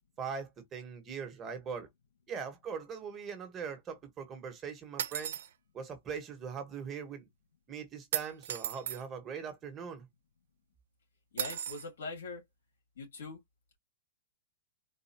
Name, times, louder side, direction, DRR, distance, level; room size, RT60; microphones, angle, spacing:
voice 1, 0.2-1.9 2.3-5.4 5.7-7.3 7.7-10.1, right 6 dB, 25° right, 1.5 m, -41 dB
sound 1, 5.0-5.5 8.1-9.0 11.4-11.9, right 10 dB, 75° right, 0.6 m, -35 dB
voice 2, 11.3-12.4 13.0-13.4, left 3 dB, 85° left, 2.6 m, -42 dB
4.2 x 2.6 x 2.8 m
hypercardioid pair, 130°, 0 cm